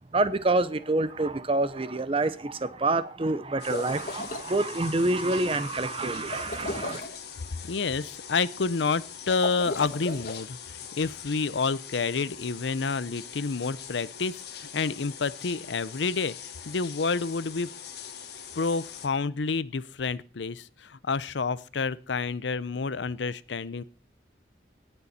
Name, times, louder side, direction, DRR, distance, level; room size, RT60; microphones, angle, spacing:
voice 1, 0.1-7.0, right 2 dB, 30° right, 0.7 m, -27 dB
sound 1, 3.5-4.5 6.3-7.2 9.3-10.4, left 2 dB, 50° left, 1.6 m, -36 dB
sound 2, 3.6-19.1, left 8 dB, 65° left, 1.5 m, -43 dB
voice 2, 7.7-16.3 16.7-17.7 18.6-23.8, left 4 dB, 90° left, 0.6 m, -29 dB
18.0 x 6.9 x 4.2 m
head